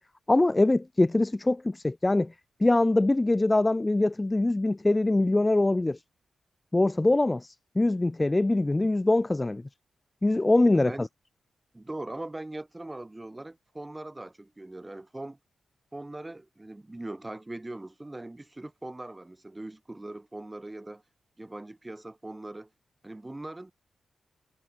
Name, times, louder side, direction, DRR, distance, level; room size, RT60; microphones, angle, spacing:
voice 1, 0.3-2.3 2.6-6.0 6.7-9.6 10.2-11.1, left 2 dB, 20° left, 1.2 m, -23 dB
voice 2, 10.7-11.1 11.7-15.4 15.9-21.0 21.4-22.7 23.0-23.7, right 2 dB, 15° right, 5.3 m, -40 dB
cardioid pair, 95°, 0 cm